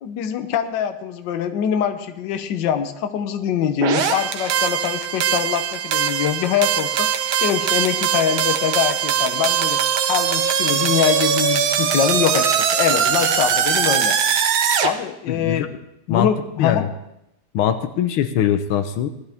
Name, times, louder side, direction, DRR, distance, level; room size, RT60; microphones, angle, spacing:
voice 1, 0.0-7.1 7.4-9.8 10.1-14.2 14.8-15.7 16.1-16.8, left 9 dB, 65° left, 9 dB, 1.5 m, -23 dB
sound 1, 3.8-14.9, right 8 dB, 80° right, 1.7 m, -21 dB
voice 2, 15.3-15.7 16.1-16.3 16.6-16.9 17.5-19.1, left 10 dB, 85° left, 10 dB, 1.6 m, -21 dB
18.5 x 12.5 x 3.5 m, 0.82 s
omnidirectional pair, 2.2 m